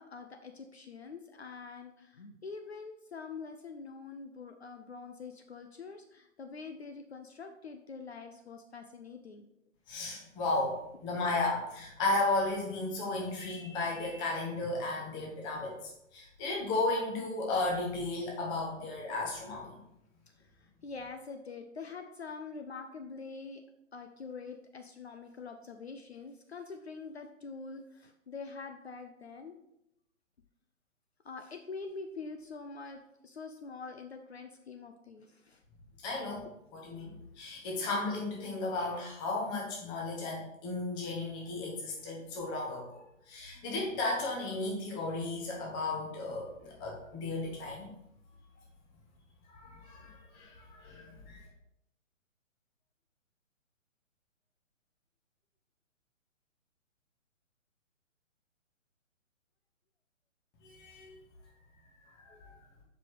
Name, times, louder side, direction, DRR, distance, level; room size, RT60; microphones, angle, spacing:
voice 1, 0.0-9.5 20.6-23.6 23.9-29.6 31.2-35.6, left 4 dB, 55° left, 6 dB, 0.7 m, -45 dB
voice 2, 9.9-15.7 16.1-19.7 36.0-36.5 36.7-43.0 43.3-47.9 49.5-51.4 60.6-61.2 62.2-62.5, left 2 dB, 10° left, -2 dB, 1.0 m, -34 dB
6.7 x 5.0 x 4.8 m, 0.81 s
figure-of-eight pair, 135°, 40 cm